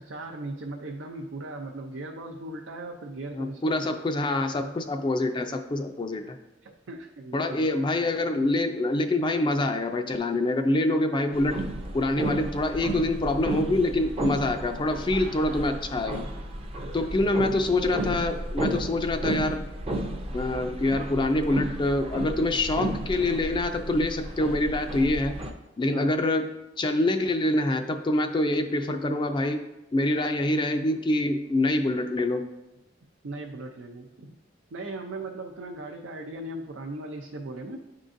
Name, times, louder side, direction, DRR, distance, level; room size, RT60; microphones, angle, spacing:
voice 1, 0.0-3.9 6.6-7.8 16.8-17.3 25.9-26.2 33.2-34.4 34.7-37.8, right 2 dB, 90° right, 1 dB, 0.5 m, -38 dB
voice 2, 3.3-6.4 7.3-11.6 11.9-16.2 16.9-19.6 20.3-25.4 25.8-29.6 29.9-32.5, left 2 dB, 25° left, 6 dB, 0.3 m, -25 dB
sound 1, 11.3-25.5, right 1 dB, 30° right, 0.5 m, -33 dB
9.6 x 3.8 x 2.6 m, 0.96 s
head